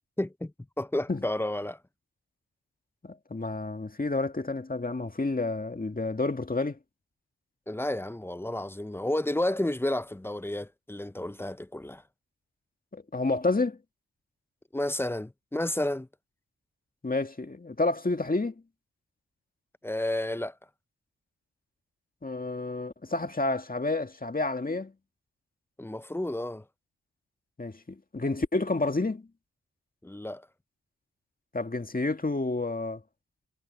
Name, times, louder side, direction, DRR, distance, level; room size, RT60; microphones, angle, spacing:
voice 1, 0.0-1.8 7.7-12.0 14.7-16.1 19.8-20.5 25.8-26.6 30.0-30.4, left 1 dB, 5° left, 0.5 m, -31 dB
voice 2, 3.0-6.8 12.9-13.8 17.0-18.5 22.2-24.9 27.6-29.3 31.5-33.0, left 3 dB, 25° left, 2.0 m, -29 dB
cardioid pair, 60°, 35 cm